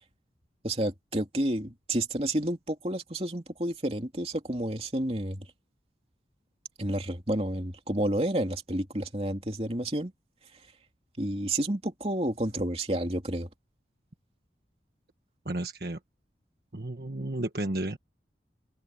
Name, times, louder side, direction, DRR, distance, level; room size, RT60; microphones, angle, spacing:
voice 1, 0.6-5.5 6.8-10.1 11.2-13.5, right 1 dB, 35° right, 2.9 m, -30 dB
voice 2, 15.4-16.0 16.7-18.0, right 1 dB, 60° right, 1.6 m, -32 dB
open air
head